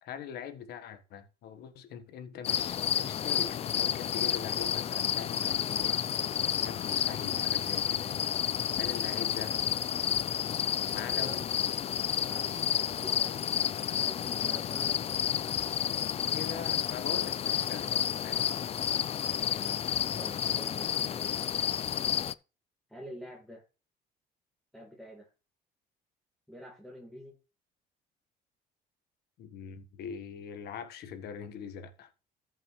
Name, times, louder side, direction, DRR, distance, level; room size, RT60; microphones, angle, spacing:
voice 1, 0.0-6.0 6.4-8.2 8.8-9.6 10.9-11.4 16.3-18.4 29.4-32.1, left 7 dB, 75° left, 1.4 m, -42 dB
sound 1, 2.4-22.3, left 9 dB, 35° left, 0.4 m, -31 dB
voice 2, 10.9-11.5 12.2-15.1 20.2-21.4 22.9-23.6 24.7-25.3 26.5-27.4, equal, ahead, 2.0 m, -47 dB
14.0 x 6.2 x 3.2 m
cardioid pair, 110°, 17 cm